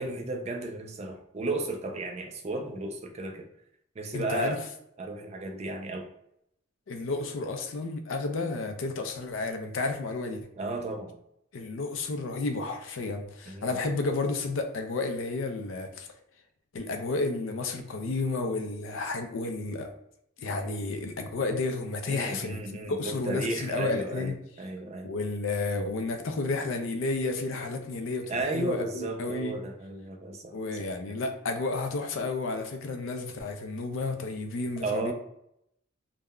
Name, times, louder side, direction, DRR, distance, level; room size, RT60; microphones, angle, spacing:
voice 1, 0.0-3.5 4.0-4.6 5.0-6.1 10.6-11.1 13.5-13.8 22.1-25.1 28.3-30.6 34.8-35.1, right 2 dB, 35° right, 0.4 m, -34 dB
voice 2, 4.1-4.5 6.9-10.5 11.5-16.1 16.7-19.9 20.4-24.3 25.0-29.6 30.5-35.1, left 3 dB, 75° left, 0.4 m, -31 dB
3.6 x 2.1 x 2.2 m
head